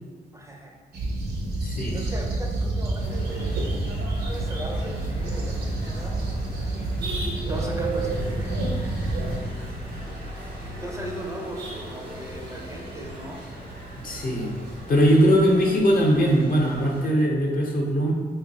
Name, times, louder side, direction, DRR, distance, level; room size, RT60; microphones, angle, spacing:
voice 1, 0.3-0.8 1.9-3.8 4.3-6.2 7.5-8.6 10.8-13.4, right 1 dB, 15° right, -1 dB, 0.4 m, -37 dB
sound 1, 0.9-9.4, right 2 dB, 70° right, 0.6 m, -28 dB
voice 2, 1.6-2.0 14.0-14.5 14.9-18.1, equal, 55° left, -2 dB, 0.8 m, -20 dB
sound 2, 3.0-17.0, right 1 dB, 85° right, 1.0 m, -39 dB
2.5 x 2.4 x 4.0 m, 1.5 s
cardioid pair, 80°, 17 cm